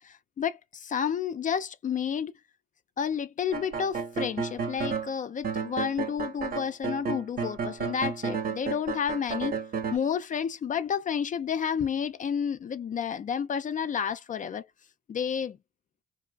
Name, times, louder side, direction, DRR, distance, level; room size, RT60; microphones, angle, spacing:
voice 1, 0.0-2.3 3.0-9.6 9.9-14.7 15.1-15.6, left 7 dB, 40° left, 0.4 m, -30 dB
sound 1, 3.5-5.1 5.4-10.0, right 6 dB, 45° right, 0.7 m, -32 dB
2.7 x 2.4 x 2.3 m
cardioid pair, 90°, 20 cm